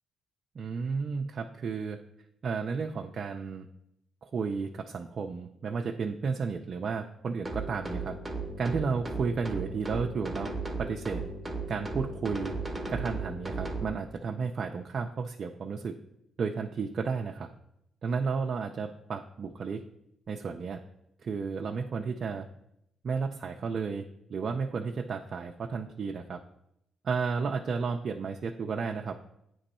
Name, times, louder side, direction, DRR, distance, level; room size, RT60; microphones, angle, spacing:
voice 1, 0.6-2.0 2.4-3.7 4.2-8.2 8.6-10.5 10.8-11.2 11.7-12.5 12.9-15.9 16.4-17.5 18.0-19.8 20.3-20.8 21.2-22.5 23.0-26.4 27.0-29.1, right 5 dB, 50° right, 3 dB, 0.4 m, -32 dB
sound 1, 7.4-13.9, right 3 dB, 10° right, 0.9 m, -36 dB
8.6 x 3.0 x 4.2 m, 0.80 s
cardioid pair, 90°, 0 cm